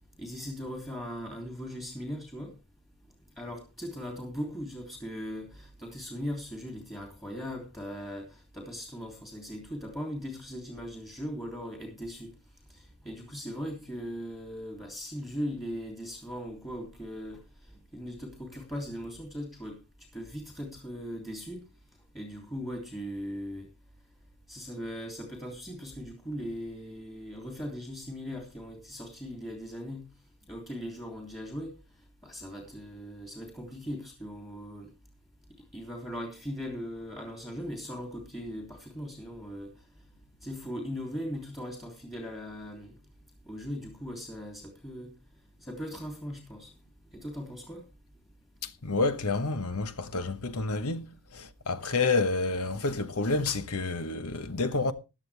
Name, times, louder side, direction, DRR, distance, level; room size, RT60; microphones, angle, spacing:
voice 1, 0.2-2.5 3.4-12.3 12.7-17.4 17.7-19.8 20.1-21.6 22.1-23.7 24.5-30.1 30.5-31.7 32.2-34.9 35.7-39.7 40.4-42.9 43.5-45.1 45.6-46.7 47.1-47.8, equal, 15° left, 2.9 m, -39 dB
voice 2, 48.6-54.9, left 3 dB, 80° left, 1.2 m, -29 dB
15.5 x 11.5 x 3.4 m
head